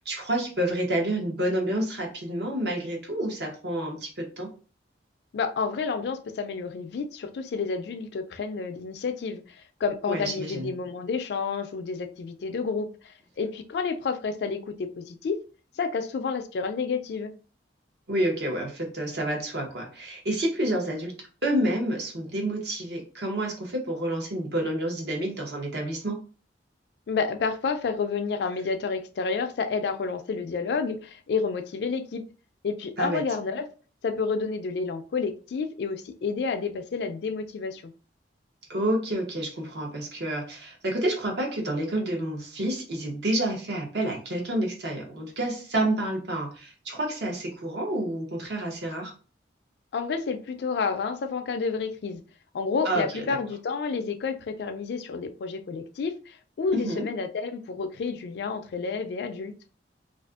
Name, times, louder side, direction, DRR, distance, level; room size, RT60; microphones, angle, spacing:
voice 1, 0.0-4.5 10.1-10.7 18.1-21.1 21.4-26.2 33.0-33.2 38.7-49.1 52.8-53.3 56.7-57.0, right 1 dB, 60° right, 0.8 m, -29 dB
voice 2, 5.3-9.4 9.8-15.4 15.8-17.3 27.1-32.2 32.6-33.7 34.0-37.9 49.9-52.2 52.5-59.5, left 5 dB, 60° left, 0.3 m, -30 dB
2.5 x 2.5 x 2.3 m
head